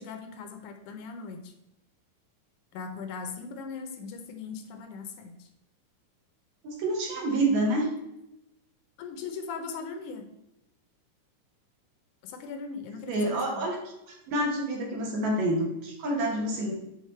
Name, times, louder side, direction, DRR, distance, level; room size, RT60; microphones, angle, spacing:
voice 1, 0.0-1.5 2.7-5.5 9.0-10.3 12.2-13.7, left 5 dB, 75° left, 6 dB, 2.2 m, -39 dB
voice 2, 6.6-7.9 13.1-13.8 14.3-16.7, right 1 dB, 65° right, -1 dB, 2.7 m, -27 dB
8.2 x 4.2 x 4.4 m, 0.86 s
omnidirectional pair, 3.7 m